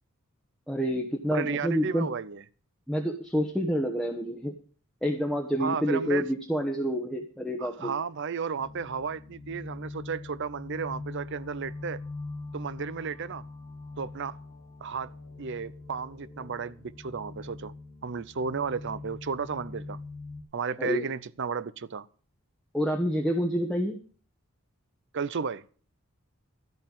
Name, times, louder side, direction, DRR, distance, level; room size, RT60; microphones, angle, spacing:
voice 1, 0.7-2.1 2.9-4.6 5.0-7.9 20.8-21.0 22.7-24.0, equal, ahead, 1.1 m, -28 dB
voice 2, 1.3-2.4 5.6-6.2 7.6-12.0 12.5-13.4 14.0-14.4 14.8-15.1 15.4-17.7 18.0-20.0 20.5-22.1 25.1-25.6, right 5 dB, 55° right, 0.6 m, -33 dB
sound 1, 8.6-20.4, left 3 dB, 35° left, 1.7 m, -43 dB
13.5 x 5.5 x 8.7 m
head